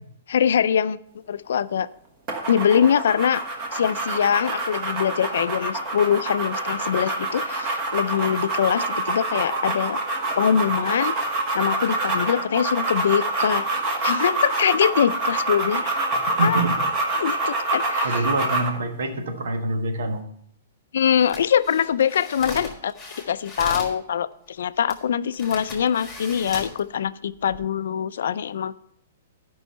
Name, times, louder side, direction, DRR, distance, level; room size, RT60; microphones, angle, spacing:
voice 1, 0.3-1.0 1.3-1.9 2.5-3.4 3.7-10.0 10.4-11.2 11.5-13.6 14.0-15.9 16.4-16.7 17.2-18.3 20.9-22.9 23.3-28.8, left 8 dB, 60° left, 15 dB, 0.4 m, -23 dB
sound 1, 2.3-18.8, right 2 dB, 20° right, 1.1 m, -26 dB
voice 2, 16.4-16.7 18.0-20.3, right 2 dB, 85° right, 6 dB, 1.5 m, -25 dB
sound 2, 21.2-24.0 24.9-25.0 25.3-26.8 27.3-27.6, left 3 dB, 5° left, 1.6 m, -37 dB
12.0 x 5.5 x 5.5 m, 0.69 s
hypercardioid pair, 180°, 0 cm